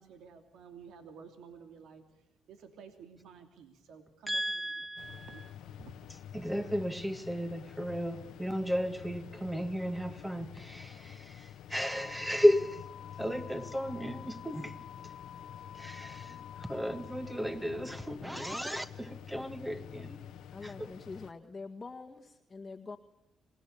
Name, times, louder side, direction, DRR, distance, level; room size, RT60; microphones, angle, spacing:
voice 1, 0.0-5.9, right 6 dB, 80° right, 2.9 m, -53 dB
voice 2, 4.3-5.4 6.3-12.8 13.2-14.8 15.7-20.3 20.8-20.9, equal, 5° right, 1.9 m, -33 dB
sound 1, 5.0-21.3, left 10 dB, 80° left, 1.2 m, -48 dB
sound 2, 11.8-18.2, left 9 dB, 60° left, 1.0 m, -50 dB
voice 3, 20.5-23.0, left 4 dB, 25° left, 1.8 m, -45 dB
27.0 x 20.0 x 8.6 m
cardioid pair, 90°, 0 cm